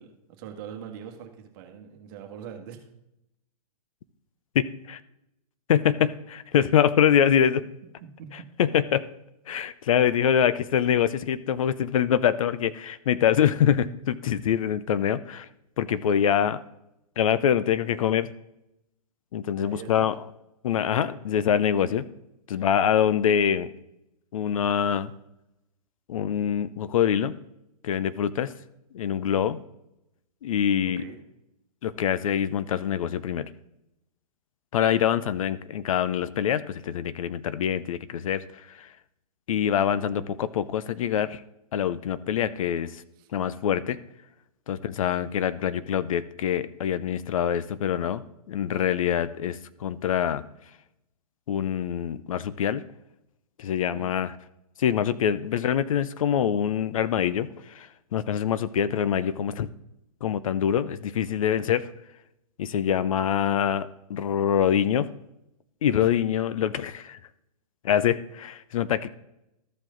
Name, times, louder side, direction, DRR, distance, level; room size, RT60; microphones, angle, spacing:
voice 1, 0.0-2.9 8.2-8.5 19.6-20.1 22.5-22.7 29.3-29.5 31.0-31.2 43.2-43.3 53.8-54.1, right 8 dB, 35° right, 4 dB, 1.5 m, -42 dB
voice 2, 4.5-5.0 5.7-7.7 8.6-9.1 9.5-15.5 15.8-16.6 17.2-18.3 19.3-20.1 20.6-22.0 22.5-23.7 24.3-25.1 26.1-27.3 27.8-28.5 28.9-29.6 30.4-31.0 31.8-33.5 34.7-38.9 39.5-41.4 41.7-43.0 43.3-44.0 44.7-48.2 48.5-50.4 51.5-52.8 53.6-54.3 54.8-59.7 60.2-61.9 62.6-65.1 65.8-67.2 67.8-69.1, left 9 dB, 60° left, 15 dB, 0.6 m, -25 dB
14.0 x 4.8 x 3.8 m, 0.85 s
hypercardioid pair, 135°, 20 cm